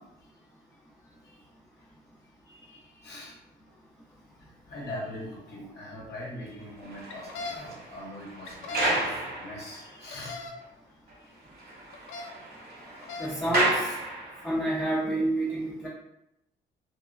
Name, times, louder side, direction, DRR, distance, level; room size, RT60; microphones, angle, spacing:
voice 1, 1.0-1.4 2.5-3.4 3.7-3.8 4.3-10.5 11.1-11.3 12.4-13.5 15.5-15.6, left 1 dB, 55° left, -4 dB, 0.8 m, -43 dB
sound 1, 6.6-10.1 10.6-10.7 11.1-11.2 11.5-14.7, right 2 dB, 55° right, 0.9 m, -32 dB
sound 2, 7.1-7.6 8.5-8.9 10.1-10.5 11.9-12.3 12.9-13.3, left 3 dB, 85° left, 0.4 m, -37 dB
voice 2, 13.2-13.9 14.4-15.9, right 1 dB, 5° left, -5 dB, 0.5 m, -28 dB
3.2 x 2.1 x 2.4 m, 0.83 s
cardioid pair, 90°, 20 cm